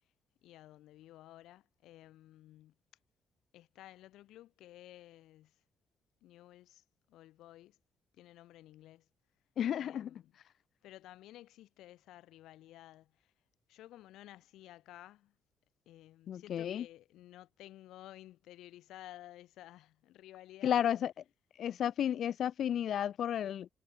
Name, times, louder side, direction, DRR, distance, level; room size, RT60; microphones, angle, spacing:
voice 1, 0.4-2.7 3.5-5.6 6.2-7.8 8.1-9.1 9.8-10.3 10.8-13.3 13.7-15.3 15.8-20.9, left 14 dB, 85° left, 6.5 m, -54 dB
voice 2, 9.6-10.1 16.3-16.8 20.6-21.1 21.6-23.7, left 10 dB, 65° left, 0.5 m, -32 dB
cardioid pair, 90°, 0 cm